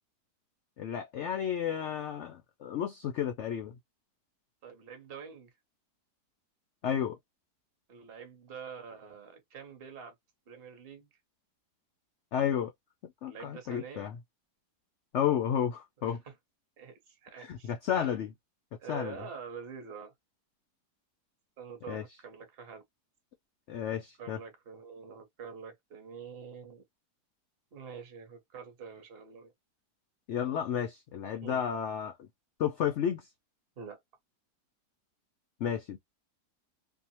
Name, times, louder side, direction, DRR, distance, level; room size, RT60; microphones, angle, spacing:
voice 1, 0.8-3.8 6.8-7.1 12.3-12.7 13.2-14.2 15.1-16.2 17.4-18.3 18.9-19.2 21.9-22.0 23.7-24.4 30.3-32.1 32.6-33.3 35.6-36.0, left 9 dB, 75° left, 0.6 m, -32 dB
voice 2, 4.6-5.5 7.9-10.1 10.5-11.1 13.2-14.1 16.0-16.3 16.8-18.2 18.8-20.1 21.6-22.8 24.2-26.8 27.7-29.5 31.4-31.6 33.8-34.0, right 6 dB, 45° right, 0.9 m, -46 dB
2.7 x 2.1 x 2.8 m
omnidirectional pair, 1.7 m